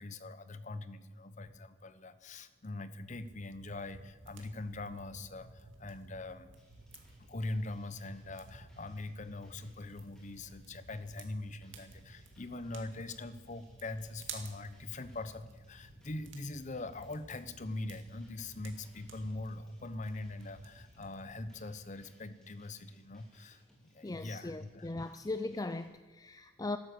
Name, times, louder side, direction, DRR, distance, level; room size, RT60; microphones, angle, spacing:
voice 1, 0.0-6.5 7.3-23.6 23.9-24.9, left 2 dB, 40° left, 13 dB, 0.9 m, -42 dB
sound 1, 3.0-21.6, right 3 dB, 70° right, 2.1 m, -54 dB
sound 2, 6.6-25.8, equal, 5° left, 3.8 m, -65 dB
voice 2, 24.0-26.8, left 2 dB, 20° left, 11 dB, 0.4 m, -39 dB
13.0 x 12.5 x 7.9 m, 1.2 s
head